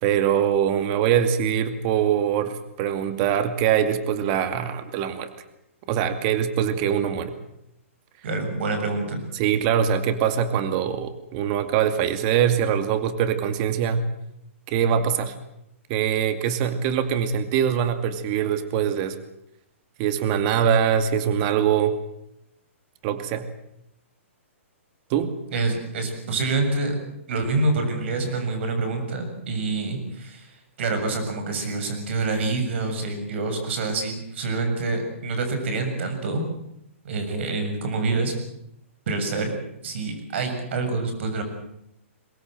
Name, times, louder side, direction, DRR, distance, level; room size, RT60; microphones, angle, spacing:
voice 1, 0.0-5.3 5.9-7.3 9.3-14.1 14.7-15.3 15.9-19.2 20.0-21.9 23.0-23.5 25.1-25.4, right 8 dB, 40° right, 9 dB, 2.4 m, -23 dB
voice 2, 8.2-9.2 25.5-27.0 27.3-36.4 37.0-38.3 39.1-39.5 39.8-41.4, right 3 dB, 60° right, 7 dB, 7.3 m, -26 dB
23.5 x 19.5 x 7.8 m, 0.79 s
hypercardioid pair, 140°, 7 cm